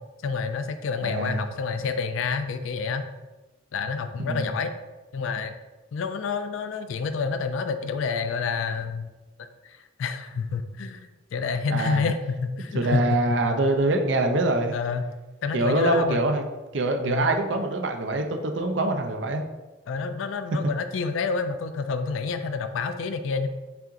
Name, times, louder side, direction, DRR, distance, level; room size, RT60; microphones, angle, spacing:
voice 1, 0.2-3.1 3.7-4.8 5.1-5.5 5.9-9.1 9.6-13.2 14.7-15.0 15.4-16.2 17.1-17.3 19.9-23.5, left 5 dB, 85° left, 9 dB, 0.4 m, -28 dB
voice 2, 1.0-1.4 4.2-4.5 11.7-12.0 12.7-14.7 15.5-16.4 16.7-19.4, right 2 dB, 65° right, 4 dB, 0.5 m, -24 dB
5.6 x 2.5 x 3.7 m, 1.2 s
head